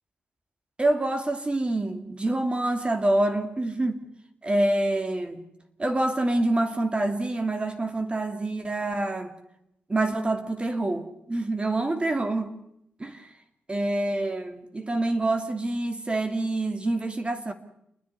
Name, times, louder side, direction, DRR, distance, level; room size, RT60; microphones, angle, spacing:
voice 1, 0.8-4.1 4.4-5.4 5.8-9.3 9.9-12.6 13.0-13.3 13.7-17.5, right 2 dB, 30° right, 2.8 m, -26 dB
30.0 x 10.0 x 9.9 m
cardioid pair, 60°, 4 cm